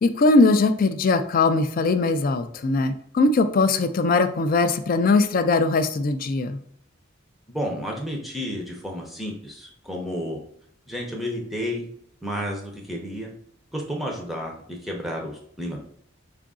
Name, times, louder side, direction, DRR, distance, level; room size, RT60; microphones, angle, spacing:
voice 1, 0.0-6.6, left 3 dB, 45° left, 11 dB, 0.3 m, -20 dB
voice 2, 7.5-10.4 10.9-11.9 12.2-13.3 13.7-15.8, equal, ahead, -1 dB, 0.6 m, -31 dB
4.6 x 2.5 x 3.6 m, 0.66 s
head